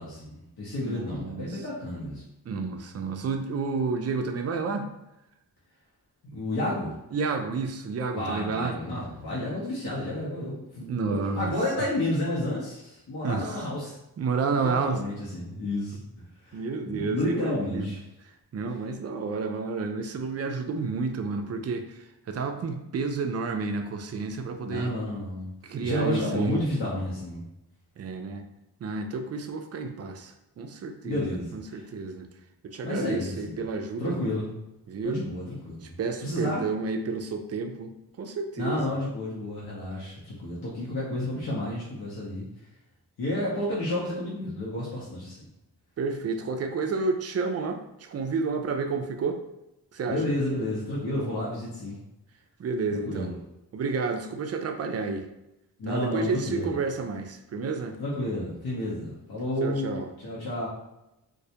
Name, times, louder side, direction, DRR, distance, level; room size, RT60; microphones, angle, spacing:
voice 1, 0.0-2.2 6.3-6.9 8.1-14.0 14.5-16.1 16.4-18.0 24.6-25.5 25.8-27.4 31.0-31.9 32.8-33.6 34.0-34.5 35.0-35.9 36.2-36.7 38.6-42.5 43.2-45.5 50.1-52.0 52.9-53.3 55.8-56.7 58.0-60.7, left 1 dB, 60° left, -7 dB, 0.9 m, -31 dB
voice 2, 0.8-1.6 2.5-4.9 7.1-8.7 10.9-11.5 13.2-13.6 14.2-15.0 16.5-18.0 18.5-24.9 25.6-26.6 28.0-28.5 28.8-32.3 32.6-34.2 34.9-35.2 35.8-37.9 38.2-38.9 46.0-49.4 49.9-50.2 52.6-53.3 53.7-55.3 55.9-58.0 59.6-60.1, right 4 dB, 40° right, 6 dB, 0.4 m, -30 dB
2.2 x 2.0 x 2.8 m, 0.89 s
supercardioid pair, 40°, 41 cm